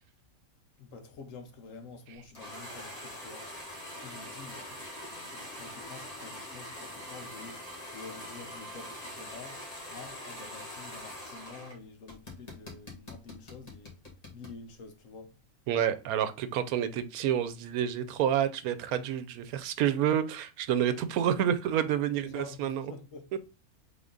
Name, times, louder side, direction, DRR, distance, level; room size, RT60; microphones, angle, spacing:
voice 1, 0.8-3.5 4.0-7.6 7.9-9.6 9.9-14.0 14.3-15.3 22.2-23.3, left 4 dB, 65° left, 1.1 m, -48 dB
sound 1, 2.3-11.7 12.1-14.6, left 1 dB, 25° left, 1.6 m, -43 dB
voice 2, 15.7-22.9, right 9 dB, 85° right, 1.1 m, -29 dB
3.9 x 3.6 x 3.7 m
omnidirectional pair, 1.5 m